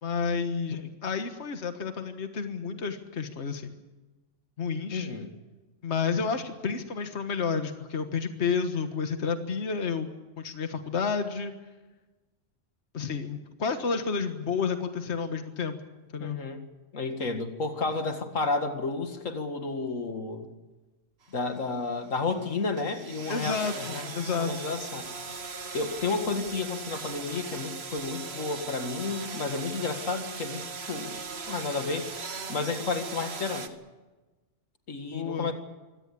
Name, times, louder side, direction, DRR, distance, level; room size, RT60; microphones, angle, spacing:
voice 1, 0.0-3.7 4.6-5.1 5.8-10.1 10.4-11.5 12.9-15.8 16.1-16.4 23.3-24.7 35.1-35.5, left 5 dB, 60° left, 7 dB, 1.7 m, -30 dB
voice 2, 4.9-5.3 16.2-16.6 16.9-20.5 21.3-24.1 24.4-25.1 25.7-31.2 31.5-32.1 32.5-33.7 34.9-35.5, left 3 dB, 90° left, 6 dB, 2.4 m, -31 dB
sound 1, 21.2-33.7, right 4 dB, 55° right, 1.6 m, -39 dB
24.5 x 17.5 x 8.5 m, 1.2 s
omnidirectional pair, 1.3 m